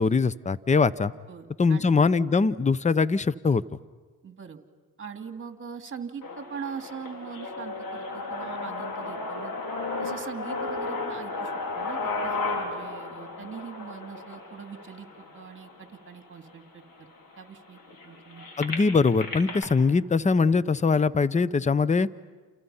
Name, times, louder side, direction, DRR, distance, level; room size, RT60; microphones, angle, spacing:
voice 1, 0.0-1.1 1.6-3.6 18.6-22.1, left 4 dB, 20° left, 18 dB, 0.8 m, -22 dB
voice 2, 1.3-2.0 4.2-4.6 5.0-9.5 10.0-17.1 17.4-18.5, right 6 dB, 30° right, 6 dB, 2.6 m, -42 dB
sound 1, 6.2-16.2 16.8-16.9 17.2-19.6, left 3 dB, 60° left, 4.5 m, -34 dB
30.0 x 28.5 x 5.7 m, 1.4 s
supercardioid pair, 75°, 39 cm